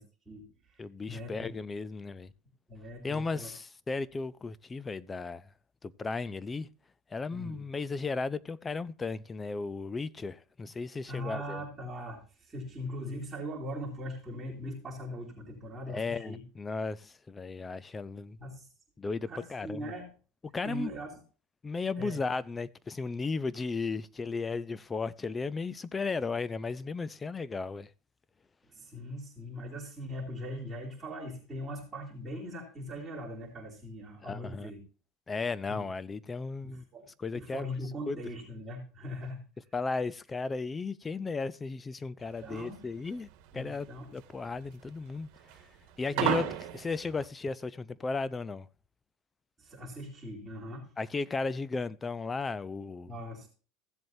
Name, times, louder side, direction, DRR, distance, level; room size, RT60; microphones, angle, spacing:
voice 1, 0.0-1.5 2.7-3.5 7.3-7.6 11.0-16.4 18.4-18.7 19.3-20.1 20.6-21.2 22.0-22.2 28.7-34.8 35.7-35.8 36.6-37.1 37.3-39.4 42.4-42.8 43.5-44.1 46.1-46.3 49.6-50.9 53.1-53.5, equal, 15° right, 3.0 m, -41 dB
voice 2, 0.8-2.3 3.0-5.4 5.8-6.7 7.1-11.6 15.9-18.4 19.0-19.9 20.4-20.9 21.6-27.9 34.2-34.7 35.3-36.8 37.2-37.6 38.1-38.2 39.7-43.3 43.5-45.3 45.6-45.7 46.0-46.5 46.7-48.7 51.0-53.1, left 4 dB, 15° left, 0.5 m, -35 dB
sound 1, 42.2-47.3, right 11 dB, 65° right, 1.7 m, -34 dB
15.5 x 7.7 x 2.7 m
supercardioid pair, 135°, 0 cm